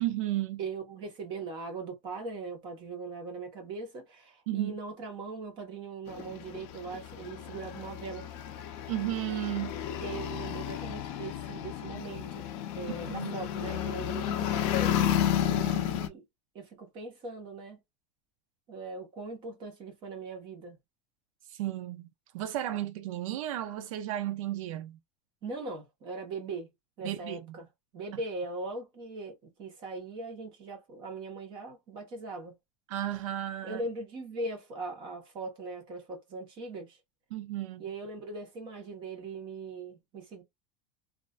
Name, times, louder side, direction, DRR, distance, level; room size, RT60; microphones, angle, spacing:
voice 1, 0.0-0.6 4.5-4.8 8.9-9.7 13.1-13.3 21.5-22.1 22.3-25.0 27.0-27.6 32.9-33.8 37.3-37.8, right 13 dB, 85° right, 0.4 m, -33 dB
voice 2, 0.6-8.3 10.0-12.5 12.7-14.7 15.3-16.2 16.5-17.8 18.7-20.8 25.4-26.7 27.0-27.7 27.9-32.5 33.6-37.0 37.8-40.4, right 3 dB, 30° right, 1.0 m, -40 dB
sound 1, 6.1-16.1, left 11 dB, 35° left, 0.5 m, -32 dB
3.1 x 2.5 x 2.3 m
supercardioid pair, 180°, 17 cm